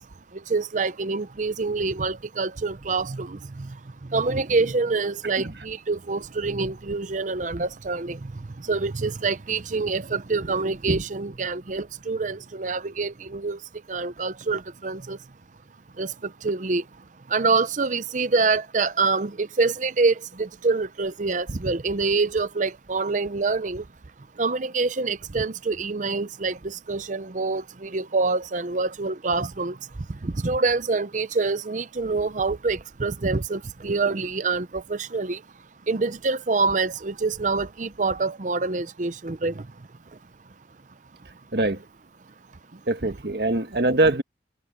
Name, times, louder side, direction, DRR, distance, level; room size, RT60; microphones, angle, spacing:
voice 1, 0.5-3.7 4.1-8.3 8.6-13.6 13.9-15.2 16.0-16.8 17.3-23.8 24.4-29.8 30.2-35.4 35.9-39.6, right 4 dB, 45° right, 0.7 m, -26 dB
voice 2, 41.5-41.8 42.7-44.2, right 2 dB, 60° right, 1.7 m, -23 dB
head